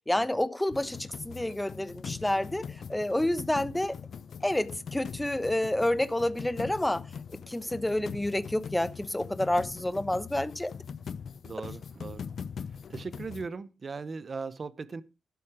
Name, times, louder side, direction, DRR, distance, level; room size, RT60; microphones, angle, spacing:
voice 1, 0.1-4.0 4.4-7.0 7.5-10.7, left 1 dB, 10° left, 1.0 m, -29 dB
sound 1, 0.7-13.5, left 6 dB, 65° left, 0.7 m, -42 dB
voice 2, 11.4-12.4 12.9-15.0, right 4 dB, 45° right, 1.0 m, -39 dB
12.0 x 8.4 x 5.0 m
cardioid pair, 75°, 0 cm